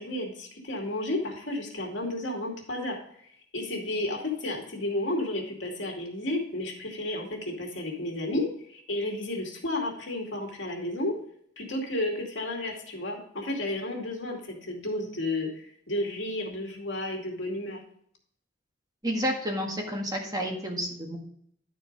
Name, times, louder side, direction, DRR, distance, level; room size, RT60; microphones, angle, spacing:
voice 1, 0.0-3.0 3.5-11.1 11.6-17.8, left 1 dB, 75° left, 0 dB, 2.4 m, -32 dB
voice 2, 19.0-21.2, equal, 20° right, 1 dB, 1.7 m, -30 dB
12.0 x 4.6 x 5.2 m, 0.66 s
head